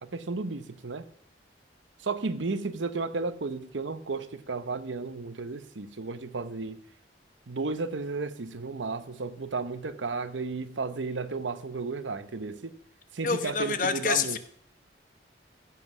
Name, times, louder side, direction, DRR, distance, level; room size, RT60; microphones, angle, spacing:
voice 1, 0.0-1.0 2.0-6.8 7.5-12.7 13.1-14.4, right 3 dB, 90° right, 12 dB, 0.8 m, -33 dB
voice 2, 13.2-14.4, left 5 dB, 45° left, 10 dB, 0.9 m, -27 dB
15.0 x 7.6 x 6.1 m, 0.63 s
head